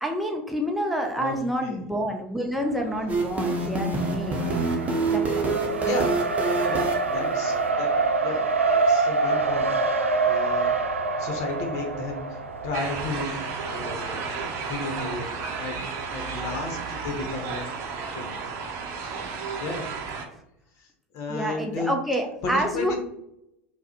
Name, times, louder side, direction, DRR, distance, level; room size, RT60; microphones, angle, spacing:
voice 1, 0.0-4.4 5.1-5.6 20.3-20.4 21.3-22.9, equal, ahead, 1 dB, 0.6 m, -28 dB
Race car auto racing, 2.6-15.2, right 3 dB, 85° right, 0.3 m, -27 dB
sound 1, 3.1-7.7, right 3 dB, 20° right, 0.9 m, -27 dB
voice 2, 6.7-7.9 8.2-9.7 10.1-10.7 11.2-13.3 13.7-14.2 14.6-15.3 15.6-15.8 16.1-17.6 18.0-18.5 19.0-19.2 19.6-19.9 20.8-21.9 22.4-22.9, left 3 dB, 50° left, 3 dB, 1.0 m, -33 dB
sound 2, 12.7-20.2, right 5 dB, 45° right, 0.7 m, -33 dB
4.5 x 2.2 x 2.9 m, 0.78 s
figure-of-eight pair, 75°, 7 cm